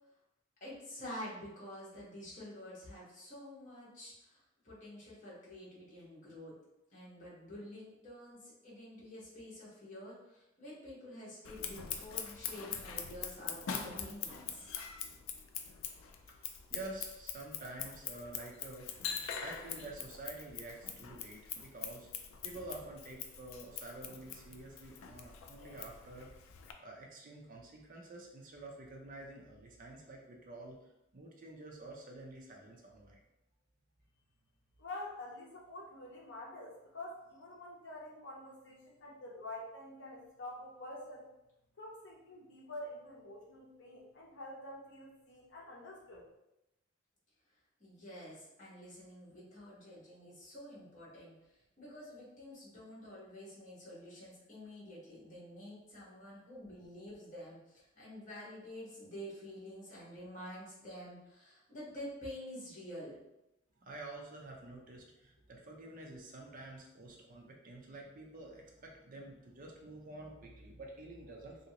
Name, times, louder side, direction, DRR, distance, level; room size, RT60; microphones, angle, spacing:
voice 1, 0.6-6.5 6.9-14.7 47.8-63.2, equal, 40° left, -6 dB, 1.2 m, -49 dB
Scissors, 11.4-26.7, left 7 dB, 85° left, 0.3 m, -43 dB
voice 2, 16.4-18.9 19.4-22.1 22.4-26.3 26.8-30.8 31.1-33.2 63.8-71.7, right 2 dB, 45° right, 0 dB, 0.5 m, -49 dB
voice 3, 34.8-41.3 41.8-46.3, left 1 dB, 60° left, -3 dB, 0.7 m, -47 dB
2.8 x 2.7 x 2.8 m, 0.90 s
head